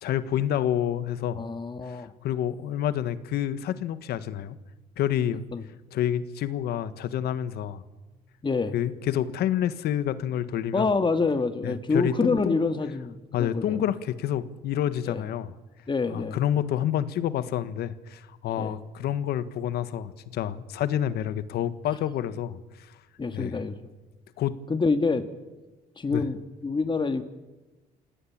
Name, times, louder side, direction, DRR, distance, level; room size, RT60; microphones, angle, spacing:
voice 1, 0.0-1.4 1.9-4.6 5.0-5.4 5.9-7.8 8.7-10.9 11.6-12.6 13.3-15.5 16.1-22.9 23.3-23.6 24.4-24.6 26.1-26.2, left 10 dB, 80° left, 13 dB, 1.5 m, -28 dB
voice 2, 1.4-2.1 5.5-5.6 8.4-8.7 10.7-13.8 15.1-15.2 15.9-16.4 18.6-18.7 23.2-23.8 24.7-25.3 26.0-26.4 26.6-27.2, left 4 dB, 30° left, 9 dB, 2.0 m, -26 dB
28.0 x 17.5 x 8.8 m, 1.1 s
cardioid pair, 75°, 16 cm